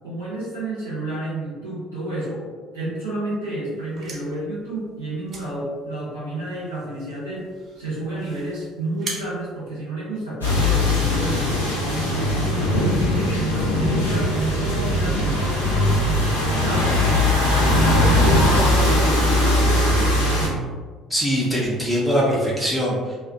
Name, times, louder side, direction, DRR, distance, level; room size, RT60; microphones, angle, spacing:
voice 1, 0.0-7.5 7.7-13.1 13.3-17.0 17.7-20.7, right 1 dB, 80° right, -9 dB, 0.6 m, -30 dB
sound 1, 3.7-10.5, right 3 dB, 40° right, 0.5 m, -41 dB
sound 2, 10.4-20.5, left 1 dB, 80° left, 0.5 m, -20 dB
voice 2, 21.1-23.2, equal, 5° left, -5 dB, 0.6 m, -22 dB
2.4 x 2.2 x 2.5 m, 1.4 s
figure-of-eight pair, 55°, 0 cm